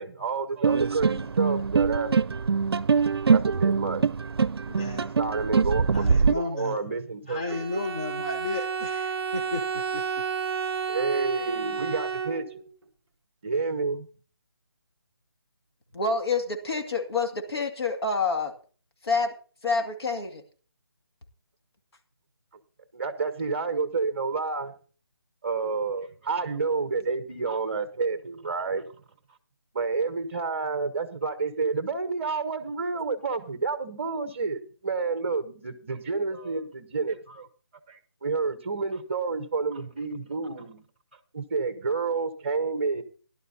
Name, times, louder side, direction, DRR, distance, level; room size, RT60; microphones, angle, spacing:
voice 1, 0.0-2.1 3.3-4.0 5.2-6.1 6.3-7.6 10.9-12.7 13.4-14.1 22.9-24.7 25.4-29.0 29.7-37.5 37.9-40.8 41.3-43.0, right 4 dB, 30° right, 11 dB, 0.8 m, -29 dB
sound 1, 0.6-6.3, right 5 dB, 70° right, 0.5 m, -23 dB
voice 2, 4.6-5.1 5.9-6.8 7.3-10.0, left 2 dB, 15° left, 4 dB, 0.5 m, -33 dB
Bowed string instrument, 7.5-12.7, right 6 dB, 5° right, 1.2 m, -31 dB
voice 3, 15.9-18.5 19.0-19.3 19.6-20.4, left 4 dB, 75° left, 3 dB, 2.2 m, -27 dB
17.5 x 11.5 x 2.7 m, 0.39 s
hypercardioid pair, 175°, 13 cm